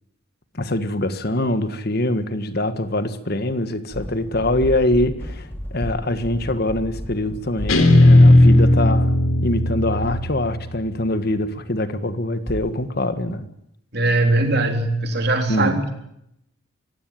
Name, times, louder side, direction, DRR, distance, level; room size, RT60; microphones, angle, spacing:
voice 1, 0.5-9.1 9.4-13.5 15.5-15.8, left 1 dB, 45° left, 1.5 m, -23 dB
sound 1, 3.9-8.6 10.0-10.9 12.5-12.8, equal, 10° left, 2.4 m, -33 dB
Guitar, 7.7-10.9, left 1 dB, 80° left, 3.5 m, -15 dB
voice 2, 13.9-15.9, right 2 dB, 50° right, 3.6 m, -20 dB
25.0 x 15.5 x 9.1 m
head